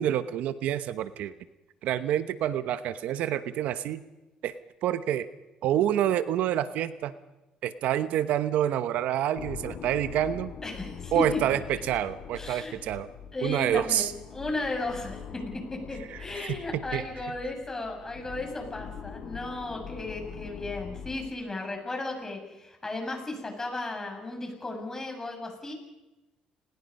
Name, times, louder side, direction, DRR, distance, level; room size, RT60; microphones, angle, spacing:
voice 1, 0.0-1.3 1.8-4.0 4.4-4.5 4.8-5.3 5.6-7.1 7.6-10.5 11.1-13.1 13.4-14.1 16.1-16.2 16.9-17.3, right 11 dB, 75° right, 13 dB, 1.0 m, -27 dB
sound 1, 9.3-21.3, left 7 dB, 65° left, 4.3 m, -43 dB
voice 2, 10.6-11.4 12.4-12.7 13.3-15.4 15.7-25.7, left 2 dB, 20° left, 3 dB, 7.3 m, -35 dB
29.5 x 20.0 x 5.5 m, 1.0 s
cardioid pair, 95°, 2 cm